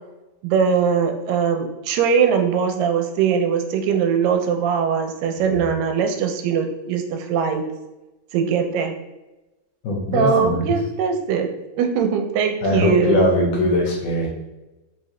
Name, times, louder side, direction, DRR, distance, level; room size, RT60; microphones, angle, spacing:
voice 1, 0.4-7.6 8.3-9.0 10.1-11.5 11.8-13.3, right 6 dB, 85° right, 6 dB, 2.2 m, -21 dB
voice 2, 5.4-5.7 9.8-10.7 12.6-14.3, left 1 dB, 75° left, -2 dB, 2.3 m, -21 dB
5.1 x 2.8 x 3.1 m, 1.0 s
omnidirectional pair, 3.9 m